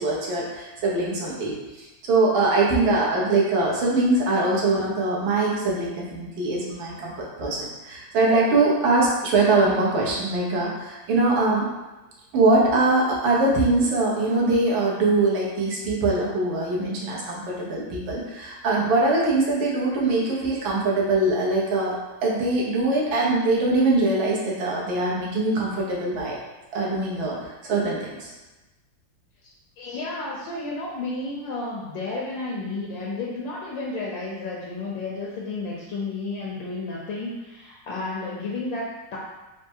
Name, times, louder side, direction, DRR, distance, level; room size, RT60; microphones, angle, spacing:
voice 1, 0.0-7.1 7.4-11.7 12.3-21.9 22.2-26.4 26.7-28.3, right 2 dB, 70° right, -4 dB, 1.5 m, -22 dB
voice 2, 29.8-39.2, left 3 dB, 70° left, -4 dB, 1.2 m, -32 dB
4.4 x 2.1 x 4.4 m, 1.1 s
omnidirectional pair, 2.4 m